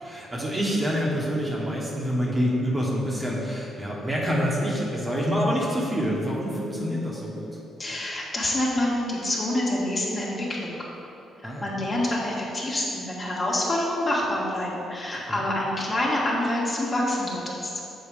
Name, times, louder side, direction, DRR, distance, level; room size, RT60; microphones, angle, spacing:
voice 1, 0.0-7.5 11.4-11.7 15.3-15.4, equal, 20° right, -4 dB, 1.1 m, -27 dB
voice 2, 7.8-10.7 11.6-17.8, left 1 dB, 35° left, -4 dB, 1.6 m, -27 dB
7.1 x 4.1 x 4.9 m, 2.9 s
cardioid pair, 90°, 0 cm